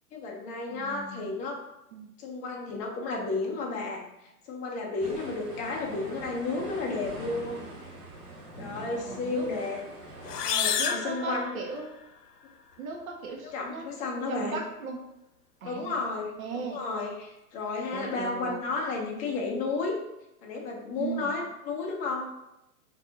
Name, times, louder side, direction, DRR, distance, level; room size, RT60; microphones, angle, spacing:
voice 1, 0.1-1.6 2.2-7.7 8.6-9.8 10.4-11.6 13.4-14.6 15.6-20.0 20.4-22.3, left 3 dB, 15° left, -1 dB, 0.6 m, -32 dB
voice 2, 0.7-1.4 1.9-2.1 8.7-9.5 10.8-11.9 12.8-13.9 14.3-15.0 15.6-16.0 16.4-16.8 17.9-18.6 21.0-21.4, right 4 dB, 65° right, 2 dB, 1.2 m, -37 dB
sound 1, 5.0-10.5, right 1 dB, 25° right, 1.0 m, -43 dB
sound 2, 10.2-12.1, left 7 dB, 85° left, 0.7 m, -30 dB
4.6 x 2.9 x 3.9 m, 0.88 s
hypercardioid pair, 135°, 46 cm